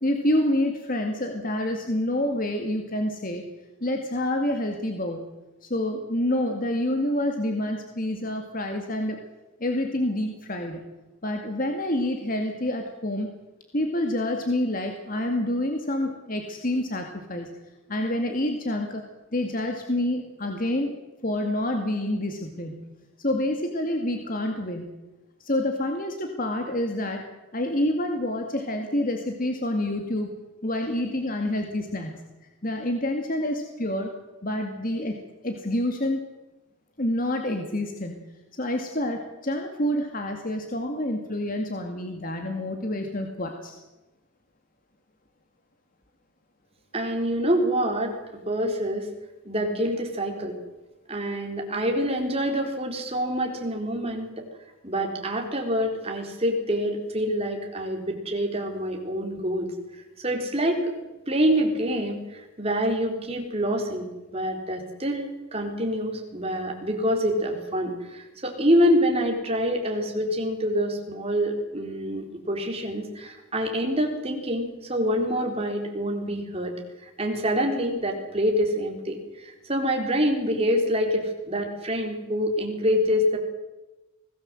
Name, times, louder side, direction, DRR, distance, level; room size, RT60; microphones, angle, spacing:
voice 1, 0.0-3.4 3.8-5.3 5.6-9.2 9.6-10.8 11.2-13.3 13.7-17.5 17.9-19.0 19.3-20.9 21.2-22.9 23.2-24.9 25.4-27.2 27.5-30.3 30.6-32.2 32.6-34.1 34.4-35.2 35.4-36.2 37.0-43.8, left 1 dB, 40° left, 4 dB, 2.3 m, -27 dB
voice 2, 46.9-49.1 49.4-50.6 51.1-54.4 54.8-59.7 60.2-60.9 61.3-76.7 77.2-83.4, equal, 30° right, 2 dB, 4.2 m, -26 dB
25.0 x 18.0 x 7.8 m, 1.1 s
head